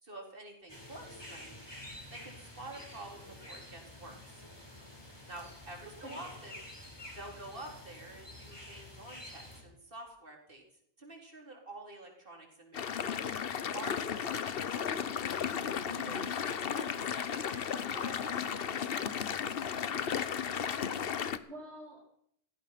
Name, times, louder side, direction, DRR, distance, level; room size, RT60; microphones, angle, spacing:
voice 1, 0.0-1.7 2.1-4.4 5.3-10.6 11.0-13.2 13.7-14.9 16.0-20.2, right 2 dB, 55° right, 1 dB, 4.0 m, -49 dB
sound 1, 0.7-9.6, left 1 dB, 20° left, 3.9 m, -49 dB
sound 2, 12.7-21.4, left 8 dB, 60° left, 1.0 m, -34 dB
voice 2, 15.9-16.4 21.2-22.1, right 1 dB, 75° right, 0 dB, 2.4 m, -47 dB
17.0 x 14.5 x 5.8 m, 0.71 s
omnidirectional pair, 1.1 m